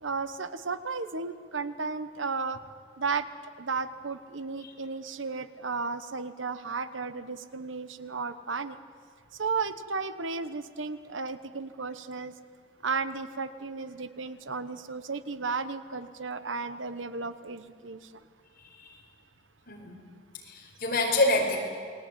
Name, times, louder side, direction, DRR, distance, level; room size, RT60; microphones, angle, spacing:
voice 1, 0.0-2.6 3.0-3.3 3.6-8.8 9.4-12.3 12.8-18.0, right 4 dB, 75° right, 12 dB, 1.1 m, -34 dB
voice 2, 19.7-20.0 20.4-21.6, left 2 dB, 50° left, 1 dB, 5.0 m, -27 dB
29.0 x 20.0 x 9.3 m, 2.1 s
head